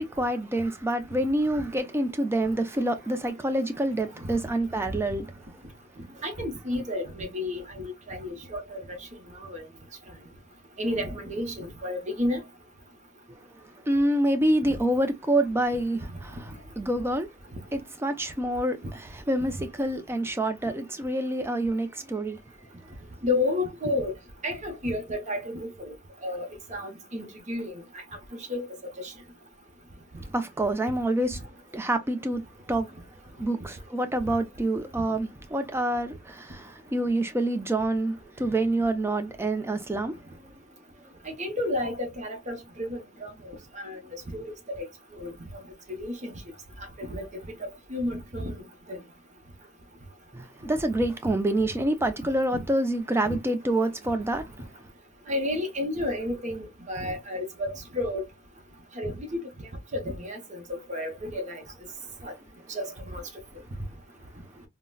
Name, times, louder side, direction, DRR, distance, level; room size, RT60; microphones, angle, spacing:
voice 1, 0.0-5.3 13.9-16.3 16.8-17.3 17.7-22.4 30.3-31.4 31.7-32.4 32.7-32.9 33.4-40.1 50.3-54.5, right 1 dB, 10° right, 0.4 m, -27 dB
voice 2, 6.2-9.0 9.4-9.6 10.8-12.4 14.6-14.8 23.2-24.1 24.4-25.9 26.2-27.7 28.5-28.6 29.0-29.1 41.3-43.3 43.8-44.0 44.3-44.4 44.8-44.9 45.2-45.3 46.0-46.4 47.0-47.3 47.9-48.5 48.9-49.0 53.2-53.4 55.3-58.2 59.0-59.4 59.9-60.6 60.9-61.6 62.2-62.3 62.7-63.2, left 1 dB, 35° right, 0.8 m, -31 dB
3.7 x 2.1 x 2.2 m
head